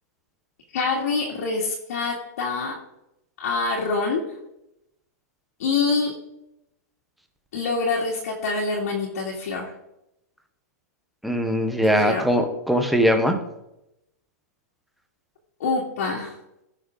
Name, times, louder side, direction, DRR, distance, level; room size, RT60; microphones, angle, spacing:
voice 1, 0.7-2.7 3.4-4.2 5.6-6.1 7.5-9.7 11.8-12.3 15.6-16.4, left 4 dB, 60° left, -3 dB, 2.3 m, -25 dB
voice 2, 11.2-13.4, equal, ahead, 4 dB, 0.9 m, -21 dB
16.0 x 6.5 x 3.8 m, 0.85 s
supercardioid pair, 170°, 9 cm